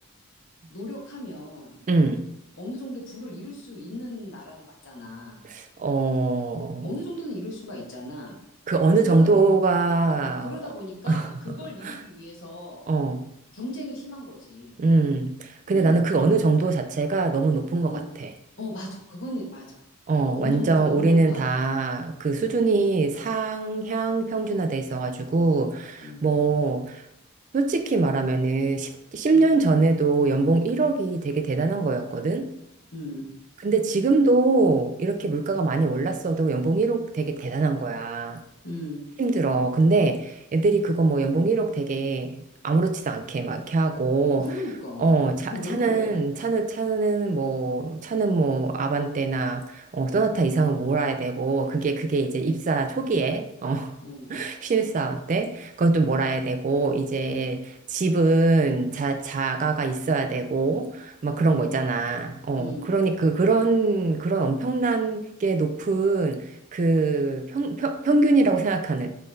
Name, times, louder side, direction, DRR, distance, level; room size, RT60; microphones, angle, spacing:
voice 1, 0.7-1.7 2.6-5.4 6.8-8.4 9.0-9.7 10.1-12.8 13.5-14.7 15.7-16.0 17.8-18.0 18.6-19.8 20.3-21.4 22.4-22.6 26.0-26.2 29.3-29.5 32.9-33.3 38.6-39.0 44.4-45.2 45.5-46.1 54.0-54.4 61.3-61.7 62.5-62.9, left 1 dB, 60° left, -1 dB, 1.1 m, -36 dB
voice 2, 1.9-2.2 5.4-6.9 8.7-10.5 11.1-11.3 11.8-12.0 12.9-13.2 14.8-18.3 20.1-27.0 27.5-32.5 33.6-38.4 39.2-42.4 42.6-44.5 45.0-53.9 54.3-69.1, right 3 dB, 35° right, 7 dB, 0.3 m, -23 dB
5.3 x 3.7 x 2.6 m, 0.80 s
head